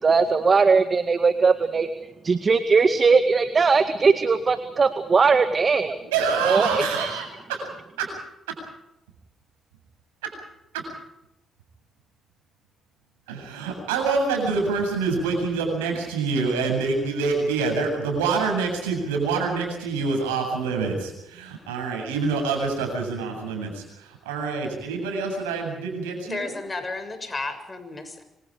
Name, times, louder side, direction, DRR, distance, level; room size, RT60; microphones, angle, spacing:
voice 1, 0.0-1.9 2.2-5.9 6.4-7.1, right 4 dB, 40° right, 9 dB, 1.9 m, -19 dB
voice 2, 6.1-7.7 8.0-8.1 8.5-8.6 10.2-10.3 10.7-10.8 13.3-26.5, right 4 dB, 90° right, 3 dB, 7.9 m, -26 dB
voice 3, 26.2-28.2, left 3 dB, 30° left, 9 dB, 6.9 m, -33 dB
27.0 x 26.0 x 5.1 m, 0.86 s
hypercardioid pair, 50°, 0 cm